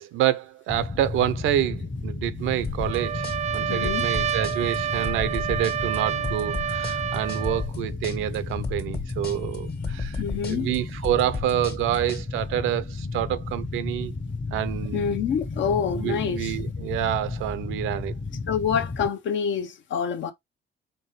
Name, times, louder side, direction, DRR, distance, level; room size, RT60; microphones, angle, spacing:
voice 1, 0.0-3.3 3.5-14.1 14.5-15.2 15.9-18.1, right 12 dB, 90° right, 0.6 m, -28 dB
sound 1, 0.7-19.1, left 3 dB, 25° left, 0.7 m, -33 dB
sound 2, 2.6-12.2, left 4 dB, 50° left, 1.5 m, -34 dB
Trumpet, 2.8-7.7, right 9 dB, 35° right, 0.4 m, -29 dB
voice 2, 3.7-4.1 10.2-10.7 14.9-16.6 18.5-20.3, left 7 dB, 70° left, 0.9 m, -27 dB
4.4 x 3.5 x 3.2 m
cardioid pair, 90°, 20 cm